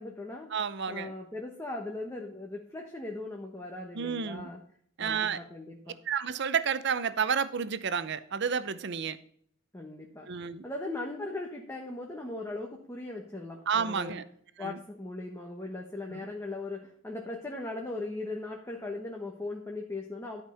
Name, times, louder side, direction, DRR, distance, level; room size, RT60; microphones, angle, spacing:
voice 1, 0.0-0.5 0.9-4.6 5.0-6.0 9.7-10.3 10.6-14.2 14.6-20.4, left 2 dB, 15° left, 1.2 m, -39 dB
voice 2, 0.5-1.1 3.9-4.5 5.0-5.4 6.1-9.2 10.3-10.6 13.7-14.2 14.6-14.8 16.1-16.3, right 6 dB, 60° right, 0.7 m, -30 dB
12.0 x 5.3 x 5.7 m
head